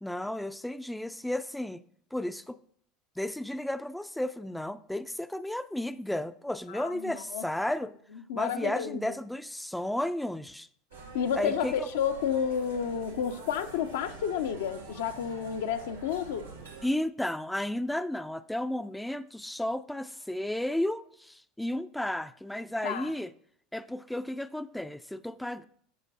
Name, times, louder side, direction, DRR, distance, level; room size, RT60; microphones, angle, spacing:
voice 1, 0.0-1.8 2.1-2.6 3.2-7.9 8.3-10.7 11.4-11.9 16.8-23.3 23.7-25.6, left 1 dB, 5° left, 0.4 m, -33 dB
voice 2, 6.7-7.5 8.1-9.2 11.1-16.5 22.8-23.1, left 8 dB, 70° left, 0.6 m, -31 dB
sound 1, 10.9-16.9, right 4 dB, 90° right, 1.8 m, -46 dB
13.5 x 5.1 x 2.8 m
hypercardioid pair, 75°, 0 cm